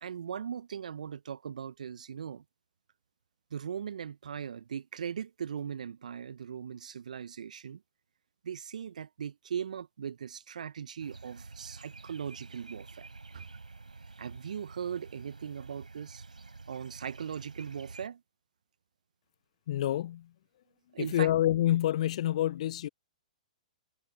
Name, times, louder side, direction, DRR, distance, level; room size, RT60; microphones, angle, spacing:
voice 1, 0.0-2.4 3.5-7.8 8.4-13.5 14.2-16.2 16.7-18.2 20.9-21.3, right 8 dB, 65° right, 0.8 m, -39 dB
sound 1, 11.0-18.1, right 3 dB, 85° right, 3.7 m, -49 dB
voice 2, 19.7-20.3 21.0-22.9, left 12 dB, 55° left, 0.4 m, -27 dB
figure-of-eight pair, 115°, 4 cm